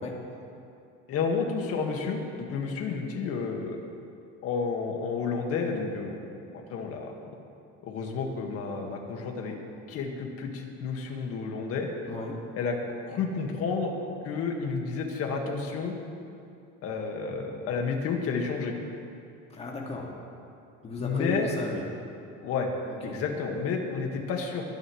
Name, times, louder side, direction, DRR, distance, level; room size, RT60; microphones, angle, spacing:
voice 1, 1.1-3.8 4.4-6.2 6.5-7.1 7.8-9.6 9.9-11.9 12.6-12.8 13.1-14.0 14.2-16.0 16.8-18.7 21.0-21.5 22.4-22.7 23.0-24.6, left 5 dB, 55° left, 2 dB, 1.8 m, -31 dB
voice 2, 12.0-12.4 19.5-20.1 20.8-21.8 22.9-23.2, left 2 dB, 20° left, -2 dB, 2.0 m, -35 dB
22.0 x 10.5 x 3.2 m, 2.6 s
cardioid pair, 150°, 29 cm